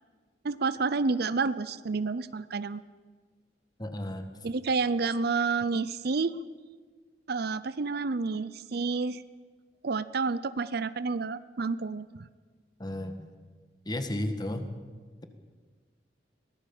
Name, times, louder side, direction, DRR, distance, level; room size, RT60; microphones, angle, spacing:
voice 1, 0.4-2.8 4.4-6.4 7.3-9.2 9.8-12.3, right 4 dB, 55° right, 16 dB, 0.6 m, -29 dB
voice 2, 3.8-4.3 12.8-13.3 13.9-14.7, left 1 dB, 20° left, 8 dB, 1.7 m, -33 dB
23.0 x 18.0 x 7.3 m, 1.5 s
head